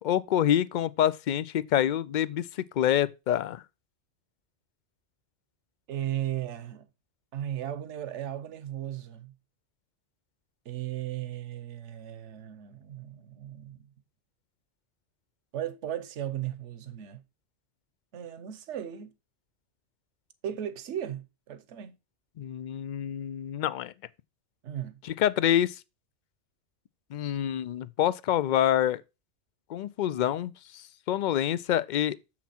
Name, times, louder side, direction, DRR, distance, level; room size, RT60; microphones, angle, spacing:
voice 1, 0.0-3.6 22.4-23.9 25.0-25.8 27.1-29.0 29.7-32.2, left 11 dB, 60° left, 0.5 m, -27 dB
voice 2, 5.9-6.9 7.3-9.3 10.6-13.9 15.5-17.2 18.1-19.1 20.4-22.0 24.6-25.0, right 11 dB, 75° right, 1.1 m, -36 dB
7.3 x 6.0 x 4.2 m
omnidirectional pair, 1.2 m